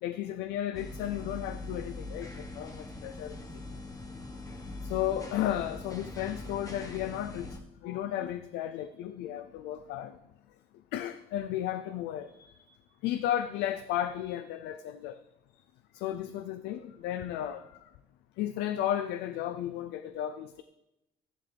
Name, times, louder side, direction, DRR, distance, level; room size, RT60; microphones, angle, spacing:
voice 1, 0.0-3.4 4.8-10.1 10.9-12.5 13.0-15.2 15.9-17.6 18.4-20.6, left 11 dB, 90° left, 10 dB, 0.5 m, -34 dB
sound 1, 0.7-7.6, left 2 dB, 20° left, 1.2 m, -42 dB
14.0 x 10.5 x 3.4 m, 0.95 s
cardioid pair, 110°, 17 cm